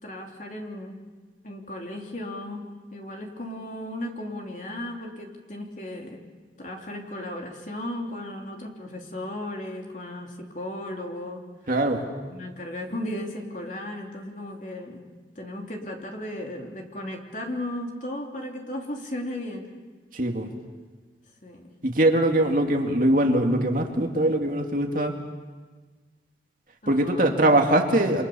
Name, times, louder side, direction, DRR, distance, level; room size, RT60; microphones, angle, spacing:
voice 1, 0.0-1.0 1.4-6.2 6.6-11.4 12.3-15.0 15.4-19.7 21.4-21.7 26.8-27.4, left 1 dB, 45° left, 1 dB, 3.5 m, -35 dB
voice 2, 11.7-12.0 20.1-20.5 21.8-25.1 26.9-28.3, right 1 dB, 50° right, 2 dB, 2.4 m, -22 dB
29.0 x 26.5 x 7.1 m, 1.3 s
head